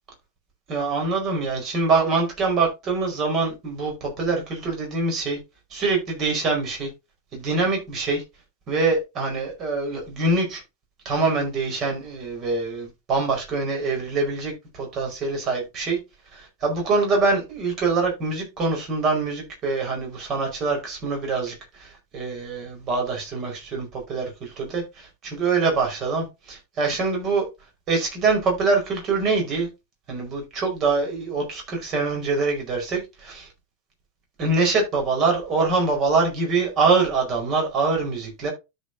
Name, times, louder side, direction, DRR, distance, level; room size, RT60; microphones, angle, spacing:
voice 1, 0.7-5.4 5.7-6.9 7.3-8.2 8.7-10.6 11.0-16.0 16.3-27.5 27.9-29.7 30.1-33.5 34.4-38.5, right 3 dB, 35° right, 4.7 m, -24 dB
13.0 x 5.6 x 2.7 m
figure-of-eight pair, 90°, 0 cm